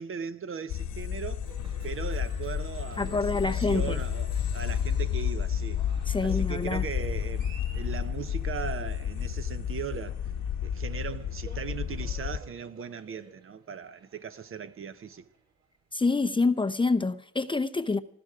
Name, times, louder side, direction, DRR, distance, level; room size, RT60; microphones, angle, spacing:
voice 1, 0.0-1.5 1.8-5.8 6.2-10.2 10.6-15.3, right 7 dB, 45° right, 0.9 m, -38 dB
sound 1, 0.7-12.4, left 9 dB, 80° left, 1.4 m, -31 dB
Cheering, 1.4-16.6, right 3 dB, 60° right, 4.9 m, -54 dB
voice 2, 3.0-4.0 6.1-6.8 15.9-18.0, left 3 dB, 15° left, 0.7 m, -27 dB
19.0 x 15.0 x 4.9 m
cardioid pair, 90°, 30 cm